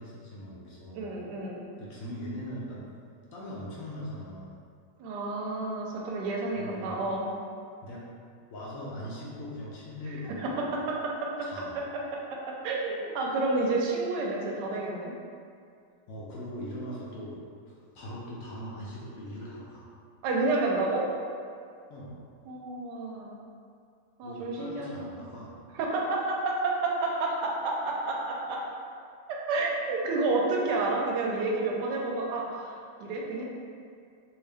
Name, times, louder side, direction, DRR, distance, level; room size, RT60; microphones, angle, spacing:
voice 1, 0.0-1.0 1.8-2.8 3.3-4.6 6.6-7.0 7.8-8.1 8.5-10.7 11.4-11.8 16.1-17.3 17.7-19.9 21.9-22.2 24.2-25.6, equal, 70° left, -5 dB, 0.8 m, -40 dB
voice 2, 0.9-1.6 5.0-7.3 10.4-11.5 12.1-12.4 12.6-15.1 20.2-21.1 22.5-23.4 24.2-25.1 25.7-28.6 29.3-33.4, right 2 dB, 75° right, -2 dB, 1.1 m, -30 dB
2.9 x 2.8 x 3.3 m, 2.3 s
omnidirectional pair, 2.0 m